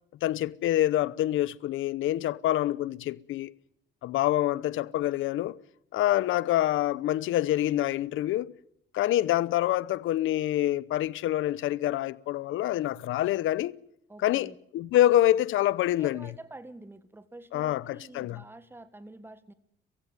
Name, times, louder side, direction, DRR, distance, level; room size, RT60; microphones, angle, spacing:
voice 1, 0.2-3.5 4.0-5.6 5.9-8.5 8.9-13.7 14.2-16.3 17.5-18.4, left 13 dB, 85° left, 0.8 m, -26 dB
voice 2, 14.1-14.6 16.0-19.5, right 2 dB, 10° right, 1.6 m, -47 dB
22.5 x 15.5 x 9.5 m
cardioid pair, 90°, 20 cm